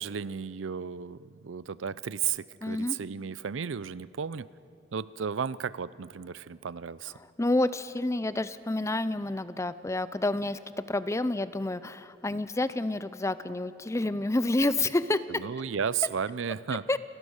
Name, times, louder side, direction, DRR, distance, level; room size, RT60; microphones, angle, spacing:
voice 1, 0.0-4.5 4.9-7.1 15.3-16.9, right 7 dB, 70° right, 18 dB, 0.5 m, -34 dB
voice 2, 2.6-3.0 7.2-15.4 16.9-17.0, left 2 dB, 15° left, 15 dB, 0.5 m, -29 dB
29.5 x 16.0 x 6.5 m, 2.7 s
head